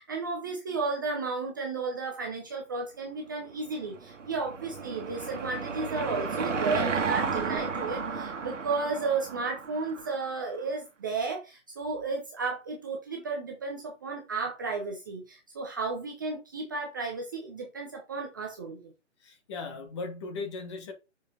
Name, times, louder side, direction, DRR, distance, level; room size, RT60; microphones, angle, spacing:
voice 1, 0.0-18.9, right 4 dB, 15° right, 0.6 m, -33 dB
Car passing by / Engine, 3.6-10.4, right 5 dB, 70° right, 1.7 m, -33 dB
voice 2, 19.2-20.9, left 3 dB, 25° left, 1.2 m, -37 dB
6.5 x 4.9 x 3.7 m
figure-of-eight pair, 150°, 38 cm